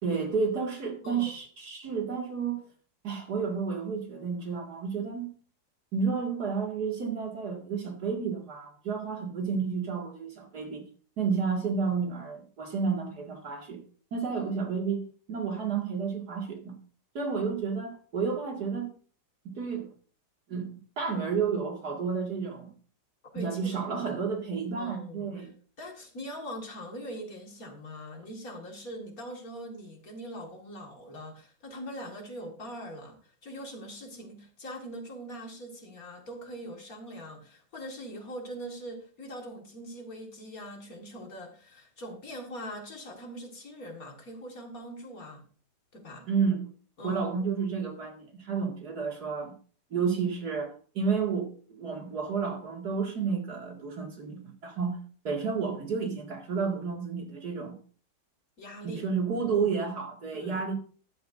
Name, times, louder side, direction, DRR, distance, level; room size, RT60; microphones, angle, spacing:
voice 1, 0.0-2.7 3.0-5.3 5.9-10.9 11.2-13.8 14.1-16.8 17.1-18.9 19.4-19.9 20.5-22.7 23.3-25.5 46.3-46.6 47.0-49.5 49.9-55.0 55.2-57.8 58.8-60.7, right 5 dB, 55° right, 2.7 m, -31 dB
voice 2, 23.3-24.1 24.8-25.5 25.8-45.4 45.9-46.3 47.0-47.3 58.6-59.0 60.3-60.6, equal, 50° left, 2.4 m, -42 dB
13.0 x 12.0 x 2.6 m
omnidirectional pair, 2.0 m